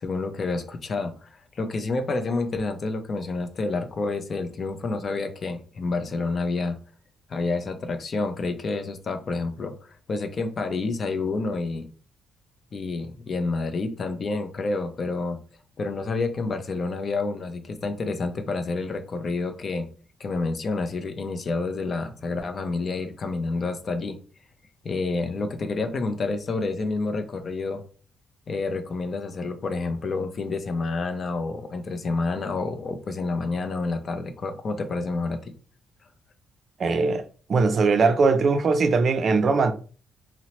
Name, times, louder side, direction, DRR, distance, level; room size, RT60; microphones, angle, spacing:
voice 1, 0.0-6.8 7.3-9.7 10.1-11.9 12.7-15.4 15.8-19.9 20.2-24.2 24.8-27.8 28.5-35.5, left 3 dB, 45° left, 0.4 m, -29 dB
voice 2, 36.8-37.2 37.5-39.7, right 4 dB, 50° right, 0.4 m, -20 dB
2.8 x 2.0 x 2.9 m
cardioid pair, 90°, 0 cm